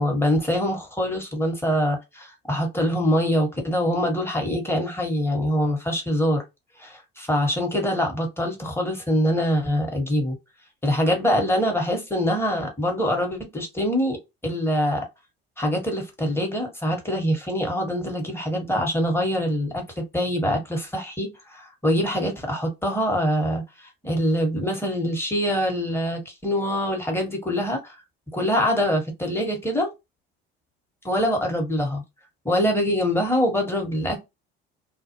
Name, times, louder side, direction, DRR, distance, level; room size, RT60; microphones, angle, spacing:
voice 1, 0.0-6.4 6.8-10.3 10.8-15.1 15.6-27.9 28.3-29.9 31.0-32.0 32.4-34.2, equal, 10° left, 1.2 m, -24 dB
2.4 x 2.1 x 2.9 m
hypercardioid pair, 65°, 30 cm